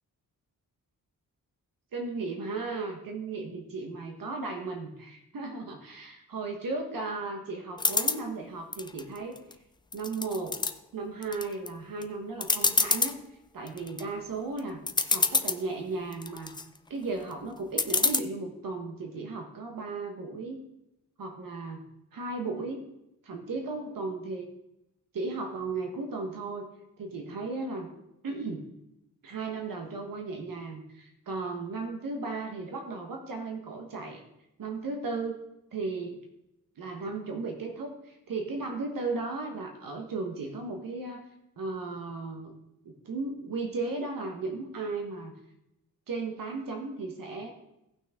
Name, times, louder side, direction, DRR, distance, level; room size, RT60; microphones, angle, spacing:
voice 1, 1.9-9.4 9.9-10.6 10.9-14.8 15.1-16.5 16.9-20.6 21.2-21.8 22.1-22.8 23.2-24.5 25.1-26.7 27.0-27.9 28.2-28.7 29.2-34.2 34.6-35.4 35.7-36.3 36.8-41.3 41.6-42.5 42.8-45.3 46.1-47.5, right 3 dB, 75° right, 3 dB, 1.3 m, -35 dB
sound 1, 7.8-8.2 8.7-9.5 9.9-10.7 11.2-11.7 12.0-12.1 12.4-13.1 13.7-14.0 14.6-14.7 14.9-15.6 16.1-16.6 17.8-18.2, left 3 dB, 15° left, 0.4 m, -26 dB
16.5 x 6.1 x 3.7 m, 0.88 s
wide cardioid pair, 180°, 34 cm